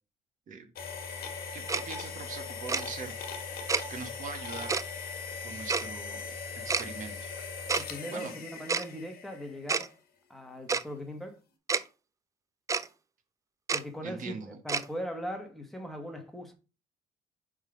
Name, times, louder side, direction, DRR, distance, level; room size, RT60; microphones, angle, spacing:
sound 1, 0.8-9.7, left 5 dB, 65° left, 1.4 m, -40 dB
voice 1, 1.5-3.1 3.9-4.7 5.4-6.2 6.5-7.3 8.1-8.3 14.0-14.6, right 5 dB, 50° right, 1.7 m, -42 dB
Tick-tock, 1.7-1.8 2.7-2.8 3.7-3.8 4.7-4.8 5.7-5.9 6.7-6.8 7.7-7.8 8.7-8.9 9.7-9.9 10.7-10.8 11.7-11.8 12.7-12.9 13.7-13.8 14.7-14.9, right 5 dB, 20° right, 0.4 m, -28 dB
voice 2, 7.7-9.9 10.3-11.4 13.7-16.5, equal, ahead, 1.5 m, -39 dB
5.2 x 3.7 x 5.1 m
cardioid pair, 110°, 17 cm